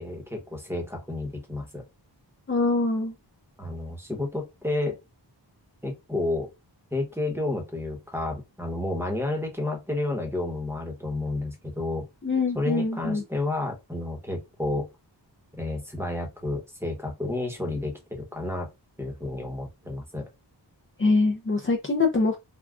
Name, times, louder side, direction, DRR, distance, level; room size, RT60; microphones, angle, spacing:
voice 1, 0.0-1.8 3.6-5.0 5.8-6.5 6.9-12.0 12.5-14.9 15.6-18.7 19.0-20.3, left 2 dB, 5° right, 1.0 m, -31 dB
voice 2, 2.5-3.1 12.2-13.2 21.0-22.4, left 3 dB, 30° left, 0.5 m, -24 dB
3.6 x 2.3 x 2.3 m
wide cardioid pair, 50°, 44 cm